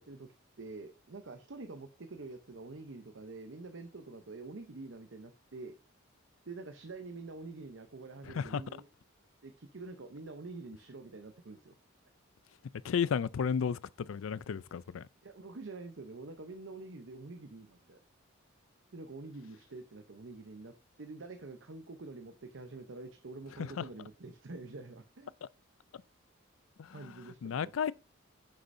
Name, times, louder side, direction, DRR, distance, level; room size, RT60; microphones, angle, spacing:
voice 1, 0.0-5.8 6.5-8.9 9.4-11.8 15.2-18.0 18.9-20.7 21.0-25.3 26.9-27.7, right 3 dB, 65° right, 0.8 m, -47 dB
voice 2, 8.2-8.6 12.8-15.1 23.6-23.8 26.8-27.2 27.4-27.9, left 7 dB, 80° left, 0.4 m, -33 dB
9.5 x 6.5 x 2.6 m
head